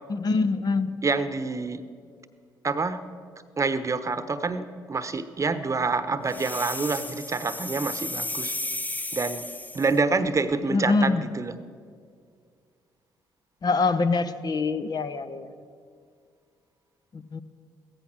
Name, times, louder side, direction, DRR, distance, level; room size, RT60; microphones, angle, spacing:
voice 1, 0.1-0.9 10.7-11.2 13.6-15.5 17.1-17.4, left 3 dB, 45° left, 10 dB, 0.9 m, -24 dB
voice 2, 1.0-1.8 2.6-3.0 3.6-8.6 9.1-9.5 9.7-11.6, right 4 dB, 30° right, 12 dB, 1.0 m, -27 dB
sound 1, 6.3-10.0, left 2 dB, 15° left, 1.2 m, -34 dB
16.0 x 14.5 x 6.1 m, 2.1 s
hypercardioid pair, 50°, 10 cm